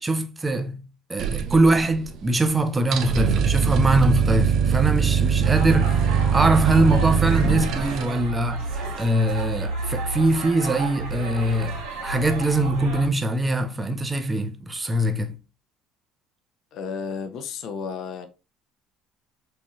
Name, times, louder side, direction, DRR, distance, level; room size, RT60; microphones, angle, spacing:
voice 1, 0.0-15.4, right 1 dB, 15° right, 0.7 m, -23 dB
sound 1, 1.2-2.2 2.4-2.5 2.8-8.0, right 7 dB, 55° right, 0.6 m, -22 dB
sound 2, 5.4-13.1, right 2 dB, 80° right, 1.8 m, -31 dB
voice 2, 16.7-18.3, left 6 dB, 60° left, 0.7 m, -32 dB
4.7 x 2.7 x 3.0 m
supercardioid pair, 105°, 0 cm